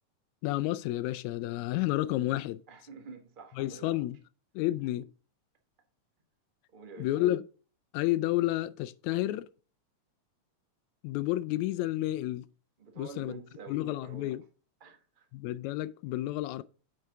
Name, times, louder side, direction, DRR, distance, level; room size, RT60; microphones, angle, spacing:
voice 1, 0.4-2.6 3.6-4.2 4.6-5.1 7.0-7.4 7.9-9.5 11.0-12.5 13.0-13.3 13.7-14.4 15.3-16.6, left 16 dB, 80° left, 1.9 m, -30 dB
voice 2, 2.7-4.0 6.7-7.1 12.8-14.4 14.8-15.2, right 4 dB, 60° right, 0.5 m, -48 dB
9.3 x 4.9 x 3.5 m
omnidirectional pair, 3.4 m